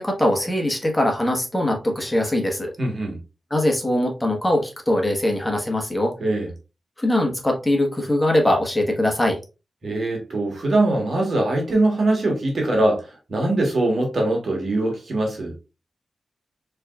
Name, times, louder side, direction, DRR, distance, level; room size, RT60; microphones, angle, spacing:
voice 1, 0.0-2.7 3.5-6.1 7.0-9.4, left 1 dB, 15° left, 1.4 m, -21 dB
voice 2, 2.8-3.2 6.2-6.5 9.8-15.6, right 2 dB, 65° right, 1.6 m, -22 dB
4.3 x 3.4 x 2.5 m
cardioid pair, 45°, 0 cm